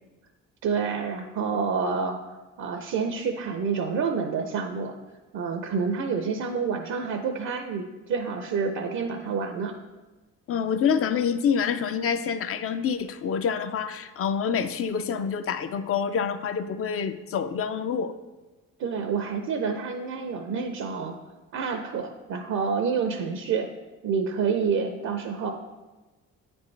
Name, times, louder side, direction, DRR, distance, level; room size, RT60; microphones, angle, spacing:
voice 1, 0.6-2.2 2.6-4.9 5.3-9.7 18.8-21.2 21.5-23.7 24.0-25.5, right 5 dB, 70° right, 5 dB, 0.6 m, -28 dB
voice 2, 10.5-18.1, left 7 dB, 50° left, 10 dB, 0.5 m, -27 dB
8.9 x 4.3 x 3.2 m, 1.2 s
cardioid pair, 90°, 30 cm